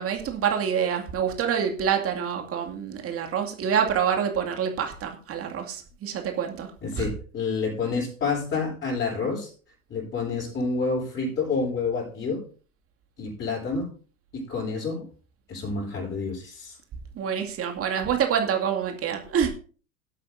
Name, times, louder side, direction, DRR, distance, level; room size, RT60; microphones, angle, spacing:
voice 1, 0.0-7.1 17.1-19.5, right 8 dB, 35° right, 4 dB, 2.3 m, -27 dB
voice 2, 6.8-9.5 9.9-12.4 13.2-13.9 14.3-15.0 15.5-16.8, left 4 dB, 30° left, -6 dB, 6.6 m, -28 dB
19.0 x 8.4 x 2.7 m, 0.39 s
figure-of-eight pair, 80°, 40 cm